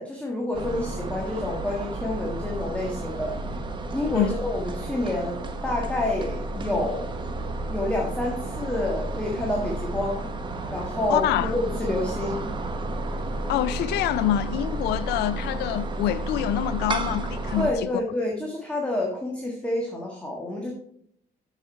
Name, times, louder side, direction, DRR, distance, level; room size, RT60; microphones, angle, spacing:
voice 1, 0.0-3.4 3.9-7.1 7.7-10.3 10.7-12.5 17.6-20.7, left 1 dB, 5° left, 1.5 m, -28 dB
sound 1, 0.5-17.7, right 2 dB, 30° right, 1.1 m, -32 dB
voice 2, 11.1-11.5 13.5-17.7, left 12 dB, 80° left, 0.5 m, -26 dB
6.8 x 6.4 x 4.5 m
cardioid pair, 110°, 17 cm